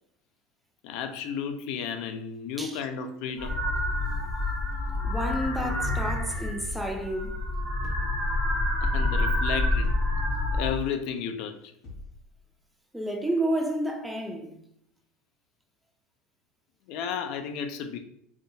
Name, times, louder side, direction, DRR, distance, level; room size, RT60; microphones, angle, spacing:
voice 1, 0.8-3.6 5.6-5.8 8.8-9.9 10.5-11.7 16.9-18.0, left 7 dB, 60° left, 0.3 m, -33 dB
sound 1, 3.4-10.7, left 2 dB, 25° left, 0.9 m, -28 dB
voice 2, 5.0-7.5 12.9-14.6, right 1 dB, 5° right, 0.4 m, -30 dB
sound 2, 5.8-7.0 7.8-8.7 9.8-10.5 11.8-12.3, left 2 dB, 45° left, 1.2 m, -42 dB
2.6 x 2.3 x 2.5 m
hypercardioid pair, 95°, 0 cm